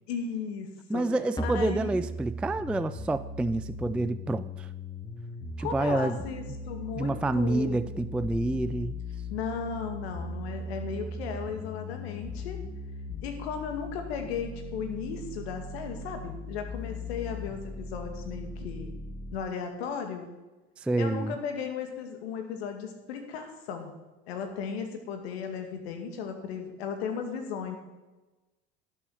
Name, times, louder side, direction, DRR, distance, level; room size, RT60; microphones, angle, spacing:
voice 1, 0.1-1.1 1.4-2.1 5.6-7.9 9.3-12.6 13.2-18.9 19.3-20.3 21.0-23.9 24.3-27.8, left 6 dB, 80° left, 6 dB, 2.0 m, -36 dB
voice 2, 0.9-4.7 5.6-6.2 7.0-9.0 20.8-21.4, right 2 dB, 5° right, 12 dB, 0.3 m, -28 dB
sound 1, 1.4-19.4, left 1 dB, 15° left, 1.5 m, -39 dB
11.5 x 7.0 x 6.4 m, 1.1 s
hypercardioid pair, 80°, 31 cm